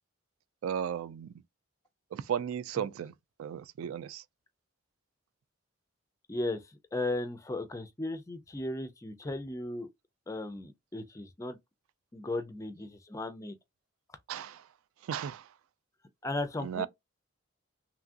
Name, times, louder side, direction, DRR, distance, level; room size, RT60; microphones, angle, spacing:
voice 1, 0.6-1.3 2.1-3.1 3.4-4.2 14.3-14.6 15.1-15.4 16.6-16.9, right 8 dB, 80° right, 0.3 m, -35 dB
voice 2, 6.3-9.9 10.3-11.6 12.1-13.6 16.2-16.9, left 2 dB, 15° left, 0.3 m, -36 dB
3.0 x 2.4 x 2.5 m
head